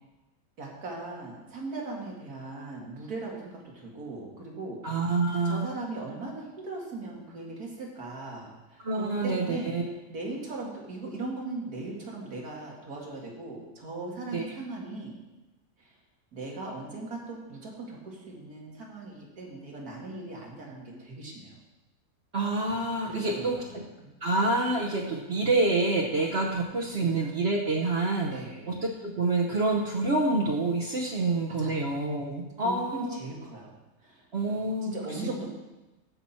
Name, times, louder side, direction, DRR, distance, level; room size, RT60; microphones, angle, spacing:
voice 1, 0.6-5.1 5.4-9.7 10.1-15.2 15.8-16.0 16.3-21.5 23.0-24.1 26.9-27.3 28.3-28.7 31.1-31.3 31.6-31.8 32.6-34.3 34.8-35.5, right 2 dB, 85° right, -2 dB, 2.5 m, -39 dB
voice 2, 4.8-5.7 8.8-9.8 14.3-14.4 22.3-23.8 24.2-28.3 28.7-28.8 29.0-33.2 34.3-35.2, right 2 dB, 50° right, 0 dB, 1.1 m, -27 dB
15.0 x 5.9 x 4.3 m, 1.1 s
omnidirectional pair, 1.6 m